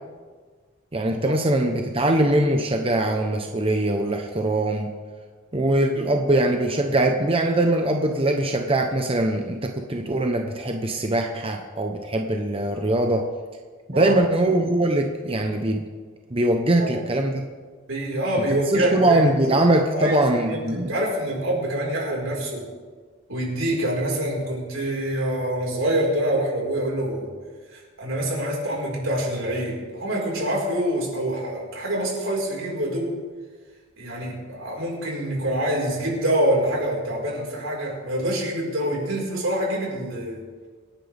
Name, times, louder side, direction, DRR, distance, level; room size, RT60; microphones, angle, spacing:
voice 1, 0.9-4.9 5.5-13.3 13.9-15.9 16.3-17.5 18.7-20.9, right 1 dB, 30° right, 3 dB, 0.9 m, -22 dB
voice 2, 17.9-19.6 19.9-22.6 23.3-27.3 27.7-33.1 34.0-40.4, right 1 dB, 85° right, -2 dB, 4.9 m, -26 dB
26.0 x 10.5 x 3.5 m, 1.5 s
head